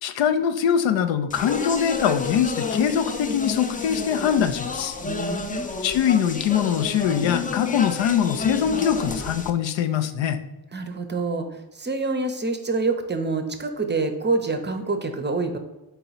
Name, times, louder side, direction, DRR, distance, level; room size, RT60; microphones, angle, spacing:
voice 1, 0.0-5.0 5.8-10.4, left 8 dB, 75° left, 10 dB, 0.6 m, -23 dB
Speech, 1.3-9.5, left 4 dB, 20° left, 0.4 m, -30 dB
voice 2, 5.1-5.7 10.7-15.6, right 3 dB, 25° right, 7 dB, 0.6 m, -26 dB
4.0 x 2.8 x 4.0 m, 1.0 s
cardioid pair, 75°, 45 cm